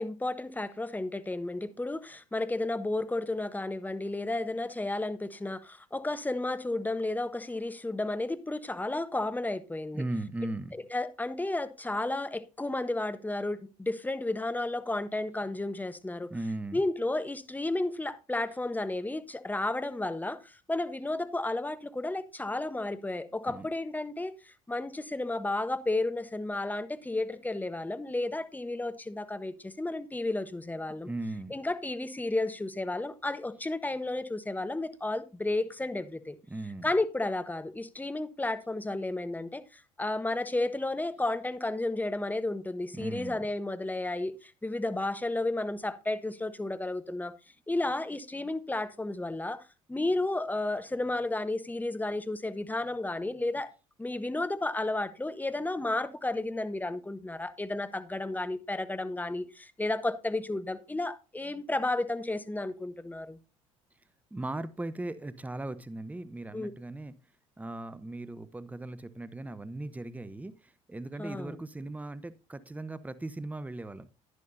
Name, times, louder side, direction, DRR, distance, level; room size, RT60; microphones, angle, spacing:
voice 1, 0.0-10.0 10.7-16.3 16.7-24.3 24.7-31.1 31.5-36.4 36.8-47.3 47.7-49.6 49.9-53.7 54.0-63.4 66.5-66.7 71.2-71.6, left 2 dB, 10° left, 1.0 m, -32 dB
voice 2, 9.9-10.8 16.3-16.8 23.5-23.7 31.1-31.5 36.5-36.9 43.0-43.4 64.3-67.1 67.6-70.5 70.9-74.1, right 2 dB, 10° right, 0.8 m, -38 dB
11.0 x 10.5 x 2.6 m
hypercardioid pair, 65°, 17 cm